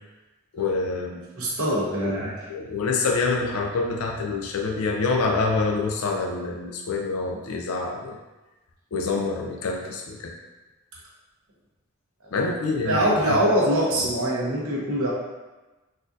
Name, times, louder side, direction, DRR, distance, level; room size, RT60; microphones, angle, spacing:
voice 1, 0.5-1.2 2.0-2.2 2.5-8.2 8.9-10.4 12.3-13.4 13.9-14.1, left 3 dB, 80° left, 1 dB, 0.4 m, -26 dB
voice 2, 1.4-2.3 12.8-15.1, right 1 dB, 75° right, -5 dB, 1.0 m, -23 dB
4.0 x 2.7 x 2.4 m, 1.1 s
head